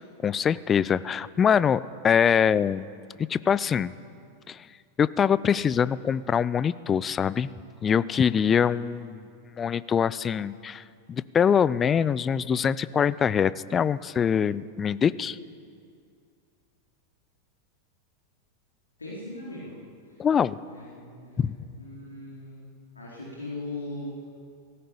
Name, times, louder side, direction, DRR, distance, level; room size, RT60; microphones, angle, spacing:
voice 1, 0.2-2.9 3.2-3.9 4.5-4.6 5.0-7.5 7.8-9.2 9.6-10.8 11.1-15.4 20.2-20.6 21.4-21.5, left 7 dB, 20° left, 18 dB, 0.6 m, -24 dB
voice 2, 19.0-19.7 20.7-22.6 22.9-24.1, left 2 dB, 80° left, -5 dB, 4.0 m, -39 dB
18.5 x 16.5 x 8.6 m, 2.3 s
figure-of-eight pair, 90°, 0 cm